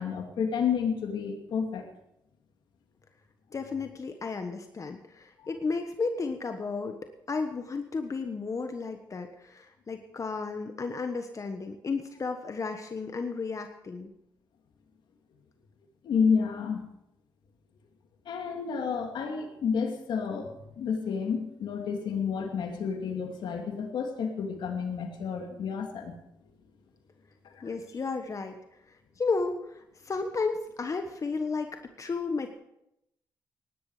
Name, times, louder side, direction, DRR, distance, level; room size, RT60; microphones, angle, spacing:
voice 1, 0.0-1.8 5.4-5.5 16.0-16.8 18.3-26.2, left 6 dB, 80° left, 3 dB, 2.7 m, -30 dB
voice 2, 3.5-7.0 7.3-14.1 27.6-28.6 28.9-32.5, left 4 dB, 45° left, 6 dB, 1.3 m, -33 dB
18.0 x 11.5 x 5.0 m, 0.82 s
cardioid pair, 70°, 8 cm